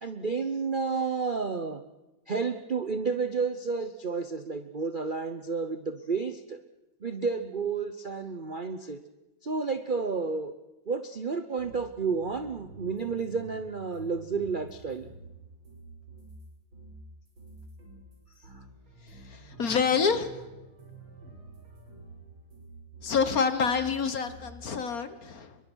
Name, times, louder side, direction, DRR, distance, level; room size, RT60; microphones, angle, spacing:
voice 1, 0.0-1.8 2.3-6.6 7.0-9.0 9.4-10.5 10.9-15.1 18.4-18.5, right 4 dB, 50° right, 9 dB, 0.6 m, -31 dB
sound 1, 11.6-16.4 16.7-23.9 24.2-24.8, right 3 dB, 80° right, 7.4 m, -49 dB
voice 2, 19.1-20.3 23.0-25.6, left 6 dB, 50° left, 11 dB, 1.7 m, -27 dB
26.5 x 23.0 x 6.3 m, 1.1 s
omnidirectional pair, 2.2 m